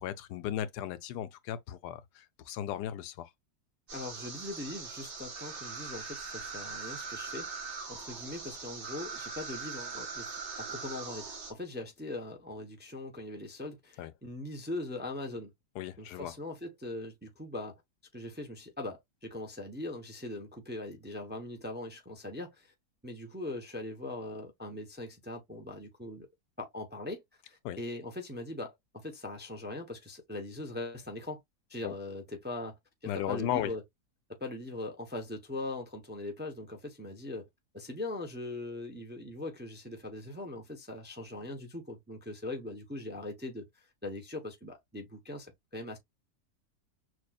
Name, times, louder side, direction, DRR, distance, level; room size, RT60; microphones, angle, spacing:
voice 1, 0.0-3.3 14.0-14.1 15.8-16.3 27.6-27.8 31.8-31.9 33.1-33.7, left 11 dB, 85° left, 1.2 m, -36 dB
voice 2, 3.9-10.3 10.6-15.5 16.0-17.8 18.1-22.7 23.0-26.3 26.6-31.4 31.7-33.8 34.4-37.5 37.7-46.0, left 2 dB, 10° right, 0.5 m, -41 dB
sound 1, 3.9-11.5, right 5 dB, 55° right, 1.8 m, -41 dB
6.2 x 2.4 x 2.3 m
omnidirectional pair, 1.7 m